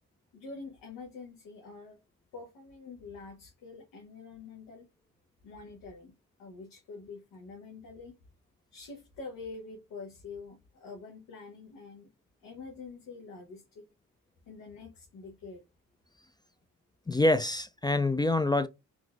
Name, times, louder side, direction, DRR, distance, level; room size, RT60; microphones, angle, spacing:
voice 1, 0.3-2.0 2.3-4.9 5.4-6.1 6.4-8.2 8.7-12.1 12.4-13.9 14.5-15.6, left 4 dB, 90° left, 0.9 m, -46 dB
voice 2, 17.1-18.7, left 2 dB, 15° left, 0.3 m, -26 dB
3.9 x 2.3 x 2.3 m
cardioid pair, 60°, 33 cm